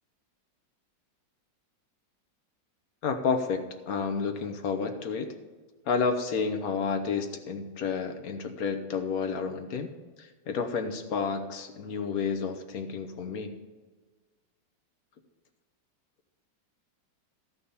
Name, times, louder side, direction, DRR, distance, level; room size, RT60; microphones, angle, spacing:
voice 1, 3.0-5.3 5.9-9.9 10.2-13.5, left 5 dB, 55° left, 7 dB, 1.4 m, -30 dB
13.0 x 5.6 x 6.8 m, 1.4 s
omnidirectional pair, 2.0 m